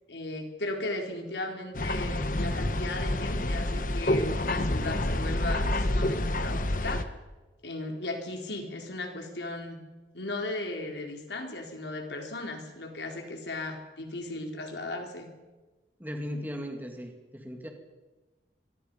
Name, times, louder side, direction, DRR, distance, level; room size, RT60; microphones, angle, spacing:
voice 1, 0.1-7.1 7.6-9.8 10.1-15.3, left 2 dB, 80° left, 3 dB, 4.1 m, -36 dB
sound 1, 1.7-7.0, left 1 dB, 45° left, 1.3 m, -28 dB
voice 2, 16.0-17.7, equal, 10° right, 3 dB, 2.6 m, -37 dB
25.0 x 22.5 x 5.5 m, 1.2 s
head